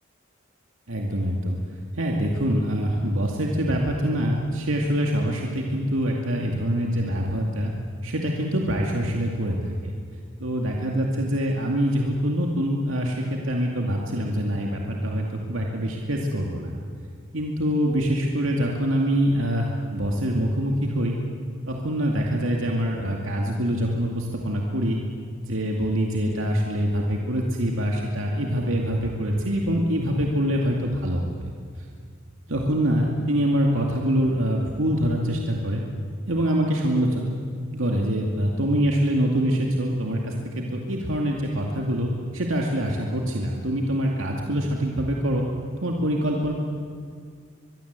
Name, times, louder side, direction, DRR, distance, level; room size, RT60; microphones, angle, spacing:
voice 1, 0.9-1.6 2.0-7.7 8.0-9.9 10.4-16.7 17.3-21.2 21.7-25.0 25.4-31.5 32.5-35.8 36.3-37.3 37.7-45.5 45.8-46.5, equal, 75° right, 0 dB, 2.4 m, -25 dB
23.5 x 22.5 x 8.2 m, 2.1 s
head